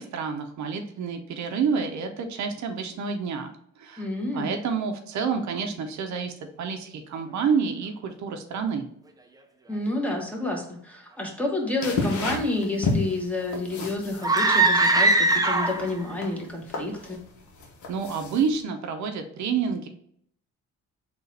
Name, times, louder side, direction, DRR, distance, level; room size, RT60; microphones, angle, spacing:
voice 1, 0.0-4.1 4.3-8.9 17.9-19.9, right 6 dB, 70° right, 6 dB, 0.7 m, -29 dB
voice 2, 4.0-4.5 9.7-17.2, left 2 dB, 5° left, 0 dB, 1.0 m, -29 dB
sound 1, 11.8-18.6, left 3 dB, 70° left, 0.9 m, -32 dB
sound 2, 14.2-16.0, right 2 dB, 15° right, 0.5 m, -20 dB
3.9 x 2.5 x 4.1 m, 0.67 s
cardioid pair, 90°, 30 cm